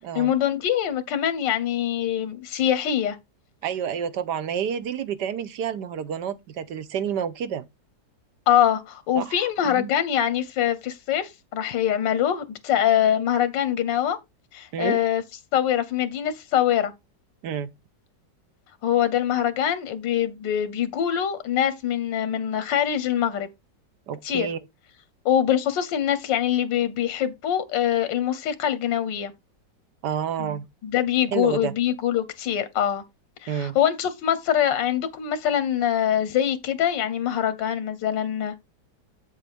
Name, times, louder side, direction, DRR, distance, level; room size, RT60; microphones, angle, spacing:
voice 1, 0.1-3.2 8.5-14.2 14.5-15.2 15.5-16.9 18.8-23.5 24.2-24.5 25.2-29.3 30.4-30.6 30.8-33.0 33.4-38.5, left 10 dB, 90° left, 1.5 m, -24 dB
voice 2, 3.6-7.7 9.1-9.9 14.7-15.0 17.4-17.7 24.1-24.6 30.0-30.7 31.3-31.7 33.5-33.8, right 8 dB, 75° right, 1.4 m, -29 dB
8.5 x 7.2 x 3.5 m
omnidirectional pair, 1.9 m